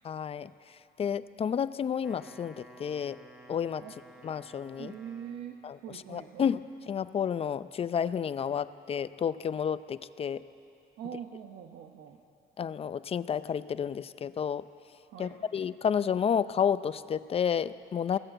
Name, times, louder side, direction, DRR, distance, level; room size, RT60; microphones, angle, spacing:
voice 1, 0.0-3.2 3.5-3.8 4.2-4.9 5.6-5.8 6.1-10.4 12.6-14.7 15.2-18.2, left 7 dB, 35° left, 15 dB, 0.5 m, -31 dB
Wind instrument woodwind instrument, 1.9-5.7, right 1 dB, 5° right, 1.5 m, -54 dB
voice 2, 4.8-6.5 11.0-12.2 15.1-15.5, right 9 dB, 75° right, 4 dB, 1.1 m, -43 dB
22.5 x 16.0 x 7.9 m, 2.6 s
cardioid pair, 110°, 17 cm